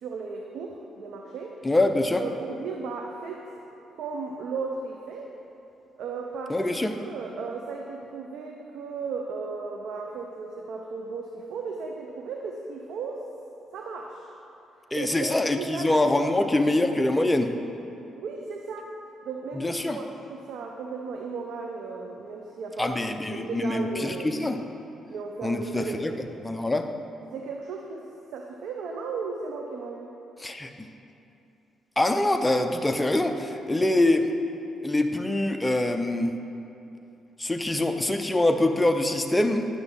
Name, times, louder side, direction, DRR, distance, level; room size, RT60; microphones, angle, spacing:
voice 1, 0.0-1.6 2.2-3.5 4.0-5.3 6.0-13.2 13.7-14.3 14.9-15.9 16.2-16.3 18.1-19.0 19.2-24.4 25.1-26.2 27.3-28.1 28.3-30.1, right 4 dB, 75° right, 1 dB, 0.6 m, -35 dB
voice 2, 1.6-2.2 6.5-7.0 14.9-17.5 19.5-20.0 22.8-24.6 25.4-26.1 26.4-26.9 30.4-30.7 32.0-34.3 34.8-36.3 37.4-39.7, left 2 dB, 10° left, 5 dB, 0.5 m, -24 dB
9.9 x 6.0 x 3.6 m, 2.8 s
cardioid pair, 95°, 0 cm